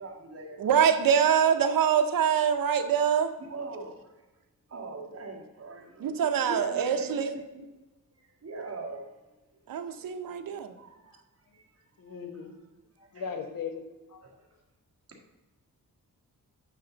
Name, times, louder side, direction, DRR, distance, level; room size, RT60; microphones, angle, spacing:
voice 1, 0.0-0.8 3.4-4.2 4.7-6.1 6.5-7.7 8.2-9.1 10.7-11.2 11.5-12.2 13.1-13.2 14.2-14.4, right 3 dB, 45° right, 0 dB, 1.8 m, -41 dB
voice 2, 0.6-3.3 6.0-7.3 9.7-10.7, right 8 dB, 90° right, 8 dB, 0.8 m, -24 dB
voice 3, 10.0-10.3 11.1-11.2 12.0-12.6 13.0-13.8 14.1-14.4, left 6 dB, 85° left, 5 dB, 1.3 m, -39 dB
9.2 x 6.5 x 4.0 m, 1.1 s
wide cardioid pair, 175°, 33 cm